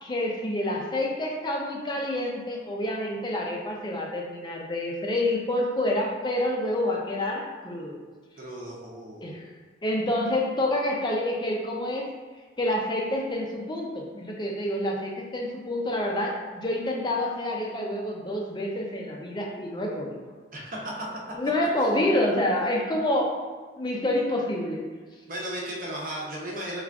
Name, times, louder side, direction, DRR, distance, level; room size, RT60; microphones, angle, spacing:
voice 1, 0.0-8.0 9.2-9.4 9.8-12.1 12.6-20.1 21.3-23.4 23.8-24.8, left 1 dB, 25° left, -1 dB, 0.5 m, -28 dB
voice 2, 8.4-9.3 20.5-21.1 25.3-26.8, right 1 dB, 50° right, -3 dB, 0.8 m, -35 dB
3.5 x 2.4 x 3.4 m, 1.5 s
head